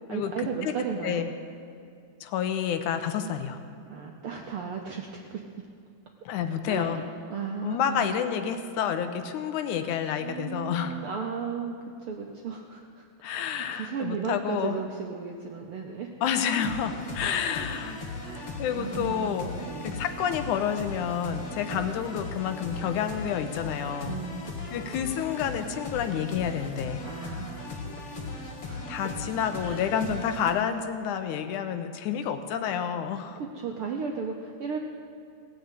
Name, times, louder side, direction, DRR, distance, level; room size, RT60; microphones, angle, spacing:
voice 1, 0.1-1.2 3.9-5.6 6.7-8.1 10.2-13.0 13.3-16.1 16.5-16.6 17.5-17.9 18.2-20.0 21.7-21.8 24.1-24.9 27.0-28.9 29.6-29.9 33.4-34.8, right 6 dB, 75° right, 1 dB, 1.3 m, -36 dB
voice 2, 2.2-3.6 6.3-7.0 7.6-11.0 13.2-14.8 16.2-18.0 18.6-19.5 19.8-24.1 24.7-27.0 28.9-33.4, left 8 dB, 85° left, 8 dB, 2.2 m, -29 dB
sound 1, 16.5-30.5, left 3 dB, 55° left, 2.6 m, -38 dB
17.5 x 7.9 x 8.1 m, 2.3 s
omnidirectional pair, 3.5 m